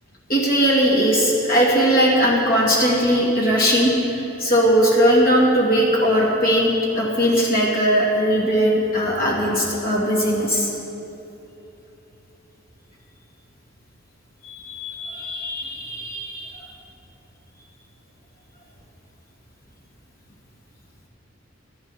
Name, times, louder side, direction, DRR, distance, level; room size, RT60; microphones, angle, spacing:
voice 1, 0.3-10.7 14.4-16.6, equal, 50° left, -3 dB, 2.8 m, -19 dB
24.0 x 10.5 x 4.4 m, 3.0 s
head